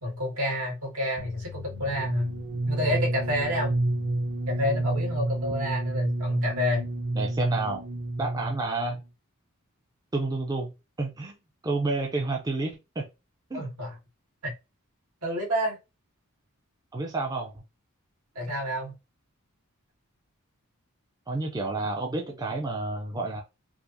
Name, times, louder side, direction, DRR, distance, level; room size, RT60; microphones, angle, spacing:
voice 1, 0.0-2.3 2.6-3.8 4.5-6.9 13.5-14.0 14.4-14.5 15.2-15.8 18.4-18.9, left 1 dB, 80° right, -1 dB, 1.9 m, -29 dB
sound 1, 1.2-8.8, right 1 dB, 50° right, 0.8 m, -30 dB
voice 2, 7.1-7.8 8.2-9.0 10.1-10.7 11.0-11.4 11.6-13.1 13.5-13.7 16.9-17.6 21.3-23.4, right 2 dB, 15° right, 1 dB, 0.5 m, -30 dB
4.8 x 2.0 x 2.6 m, 0.26 s
head